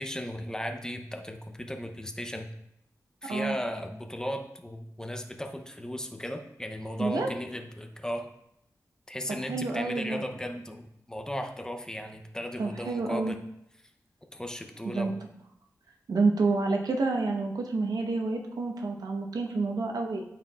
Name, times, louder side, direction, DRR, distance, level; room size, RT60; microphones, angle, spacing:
voice 1, 0.0-2.5 3.2-8.3 9.1-13.4 14.3-15.1, equal, 10° left, 5 dB, 0.6 m, -36 dB
voice 2, 3.2-3.6 7.0-7.3 9.4-10.2 12.6-13.3 14.8-15.1 16.1-20.2, right 3 dB, 90° right, 2 dB, 0.9 m, -28 dB
12.5 x 4.5 x 2.4 m, 0.77 s
wide cardioid pair, 130°, 6 cm